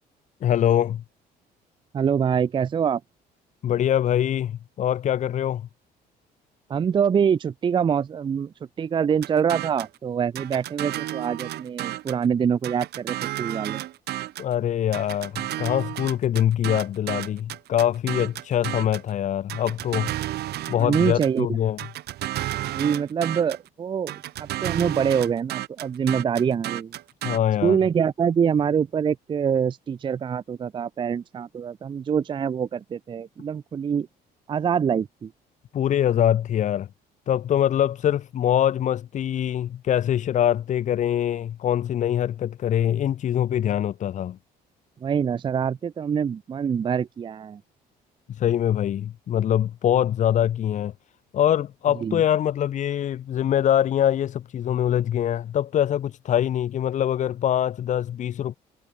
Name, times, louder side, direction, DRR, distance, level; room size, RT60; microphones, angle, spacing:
voice 1, 0.4-1.0 3.6-5.6 14.4-20.1 20.7-21.8 27.2-27.8 35.7-36.9 37.3-44.4 48.3-50.9 51.3-58.5, left 10 dB, 45° left, 0.7 m, -23 dB
voice 2, 1.9-3.0 6.7-13.8 20.8-21.5 22.7-27.0 27.6-34.1 34.5-35.3 45.0-47.6 52.0-52.2, right 7 dB, 30° right, 0.5 m, -25 dB
sound 1, 9.2-10.0 10.4-12.2 12.6-14.5 14.9-19.1 19.5-21.4 21.8-23.7 24.1-27.4, right 14 dB, 75° right, 5.2 m, -32 dB
cardioid pair, 110°, 17 cm